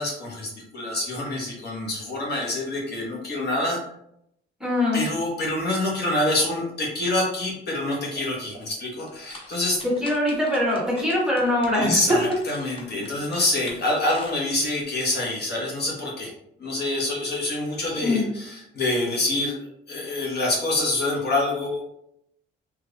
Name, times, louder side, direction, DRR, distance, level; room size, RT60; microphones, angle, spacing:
voice 1, 0.0-3.8 4.9-9.8 11.7-16.3 16.6-19.6 19.9-21.8, left 2 dB, 55° left, -3 dB, 1.3 m, -26 dB
voice 2, 4.6-5.1 9.8-12.2 18.0-18.3, left 1 dB, 5° right, -4 dB, 1.3 m, -22 dB
sound 1, 9.0-14.8, left 2 dB, 25° left, 0.8 m, -43 dB
3.3 x 3.2 x 2.5 m, 0.75 s
cardioid pair, 90°, 20 cm